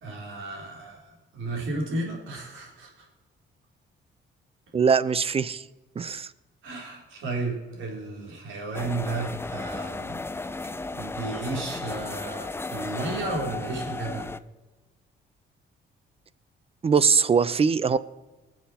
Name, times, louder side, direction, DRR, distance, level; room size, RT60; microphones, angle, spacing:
voice 1, 0.0-3.1 6.6-10.2 10.9-14.3, right 3 dB, 75° right, 0 dB, 3.8 m, -33 dB
voice 2, 4.7-5.6 6.0-6.3 16.8-18.0, right 6 dB, 30° right, 17 dB, 0.6 m, -22 dB
sound 1, 8.7-14.4, left 3 dB, 10° left, 0.5 m, -34 dB
20.0 x 7.3 x 4.3 m, 1.1 s
cardioid pair, 90°, 20 cm